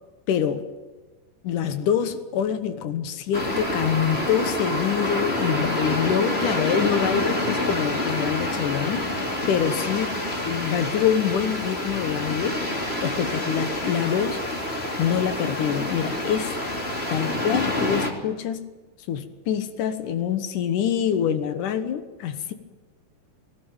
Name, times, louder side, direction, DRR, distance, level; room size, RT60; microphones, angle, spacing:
voice 1, 0.3-0.6 1.4-10.1 10.4-12.5 13.0-14.4 15.0-16.5 17.1-18.6 19.1-22.5, left 8 dB, 75° left, 10 dB, 1.9 m, -25 dB
sound 1, 3.3-18.1, left 1 dB, 15° left, 2.3 m, -27 dB
19.5 x 18.5 x 8.9 m, 1.3 s
omnidirectional pair, 5.5 m